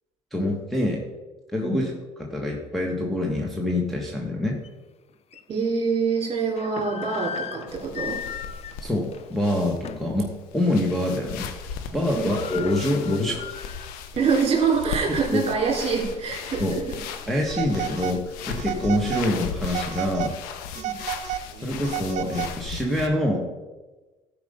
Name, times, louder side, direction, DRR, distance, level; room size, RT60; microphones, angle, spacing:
voice 1, 0.3-1.0 1.5-1.9 2.2-4.6 8.8-11.5 11.9-13.5 15.3-15.4 16.6-16.7 17.3-20.3 21.6-23.5, left 1 dB, ahead, -3 dB, 1.4 m, -25 dB
sound 1, 4.6-4.7 5.3-5.4 6.3-10.2 10.6-10.8 11.1-11.5 11.8-11.9 12.1-14.0 14.4-14.5 15.2-16.5, left 8 dB, 45° left, 0.6 m, -38 dB
voice 2, 5.5-8.2 12.1-12.3 14.1-17.0 20.7-20.9, right 5 dB, 40° right, 0 dB, 3.6 m, -25 dB
sound 2, 7.7-23.1, left 6 dB, 85° left, 0.9 m, -37 dB
Telephone, 17.5-18.2 18.6-19.3 19.6-20.4 20.7-22.8, right 12 dB, 55° right, 0.6 m, -32 dB
12.5 x 5.1 x 5.3 m, 1.2 s
cardioid pair, 95°, 15 cm